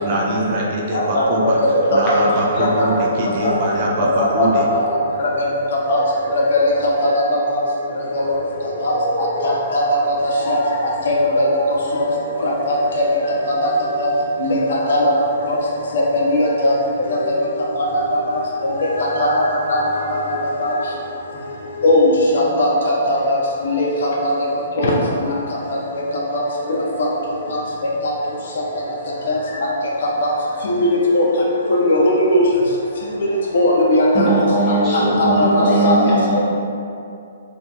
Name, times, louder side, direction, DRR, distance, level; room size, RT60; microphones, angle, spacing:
voice 1, 0.0-1.6 1.9-4.7, right 1 dB, 35° right, -2 dB, 0.4 m, -22 dB
voice 2, 0.9-2.3 2.6-2.8 3.4-3.5 4.5-4.8 5.2-5.3 5.9-6.0 6.5-6.6 7.0-7.1 8.8-10.2 10.5-10.6 11.1-11.4 11.9-12.0 12.4-12.8 14.0-14.1 14.4-14.6 14.9-15.1 15.5-15.6 16.3-16.7 19.2-19.4 19.7-19.8 20.1-20.2 20.6-20.7 21.8-22.0 22.3-23.4 23.7-24.1 24.8-24.9 26.3-26.4 29.3-29.4 30.2-30.3 30.6-30.7 31.1-31.2 31.7-32.4 33.5-34.3 35.2-35.3 35.5-36.0, left 1 dB, 60° left, -4 dB, 0.7 m, -17 dB
voice 3, 34.1-35.3 35.6-36.4, right 1 dB, 10° left, -10 dB, 0.7 m, -18 dB
2.8 x 2.4 x 3.5 m, 2.5 s
hypercardioid pair, 165°, 0 cm